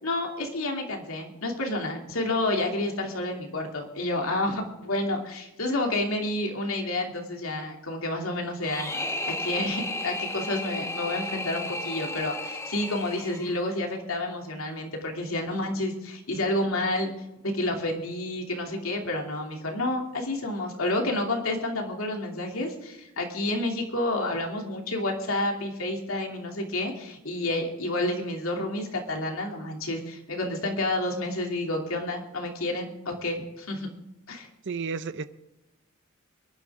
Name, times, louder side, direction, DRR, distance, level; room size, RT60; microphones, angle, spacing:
voice 1, 0.0-8.9 9.2-17.1 17.4-33.9 34.3-34.5, left 1 dB, 80° left, 1 dB, 2.8 m, -29 dB
sound 1, 8.6-13.7, left 2 dB, 15° left, 1.1 m, -34 dB
voice 2, 34.7-35.2, right 5 dB, 60° right, 12 dB, 0.6 m, -31 dB
23.0 x 11.5 x 3.7 m, 0.95 s
head